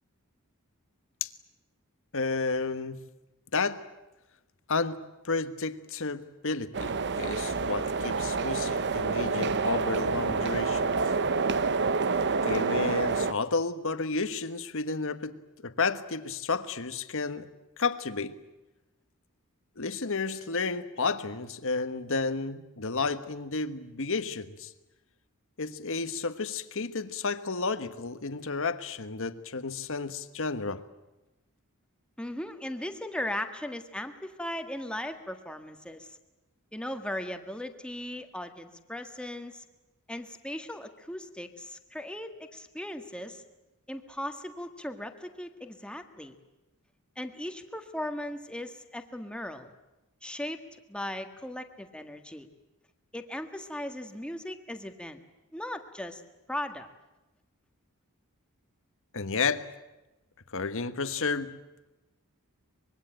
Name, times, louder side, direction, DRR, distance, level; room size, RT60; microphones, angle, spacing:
voice 1, 2.1-3.0 3.5-3.8 4.7-10.9 12.4-17.5 17.8-18.4 19.8-24.7 25.6-30.8 59.1-59.7 60.5-61.6, left 4 dB, 60° left, 1.4 m, -31 dB
sound 1, 6.7-13.3, right 4 dB, 50° right, 0.9 m, -28 dB
voice 2, 32.2-36.2 36.7-39.6 40.1-43.4 43.9-46.4 47.2-49.7 50.2-52.5 53.1-55.2 55.5-56.2 56.5-56.9, left 1 dB, 5° left, 1.7 m, -38 dB
25.0 x 22.0 x 9.1 m
head